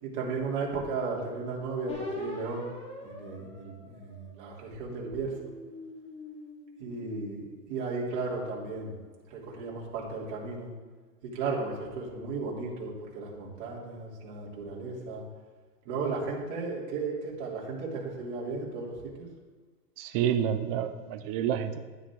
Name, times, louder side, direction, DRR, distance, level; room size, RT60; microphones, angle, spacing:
voice 1, 0.0-2.7 3.0-5.5 6.8-9.0 9.3-10.7 11.2-15.2 15.9-19.3, right 4 dB, 45° right, -4 dB, 3.4 m, -35 dB
sound 1, 1.9-4.6 5.2-7.6, left 1 dB, 15° left, 2.7 m, -43 dB
voice 2, 20.0-21.8, right 9 dB, 25° right, 10 dB, 0.5 m, -29 dB
10.5 x 9.5 x 3.8 m, 1.4 s
hypercardioid pair, 135°, 47 cm